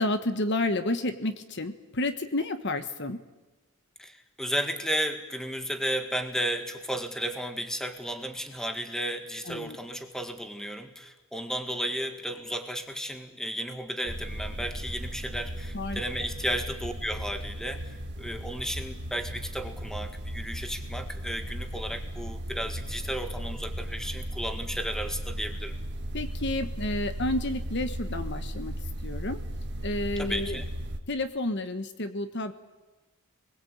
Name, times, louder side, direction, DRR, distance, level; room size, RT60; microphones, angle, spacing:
voice 1, 0.0-3.2 9.5-9.8 15.7-16.0 26.1-28.7 29.0-29.4 29.8-30.6 31.1-32.5, left 2 dB, 50° left, 9 dB, 1.3 m, -30 dB
voice 2, 4.0-25.8 30.2-30.7, equal, ahead, 6 dB, 1.8 m, -33 dB
sound 1, 14.0-31.0, right 1 dB, 50° right, 1.5 m, -36 dB
27.5 x 21.0 x 8.6 m, 1.2 s
head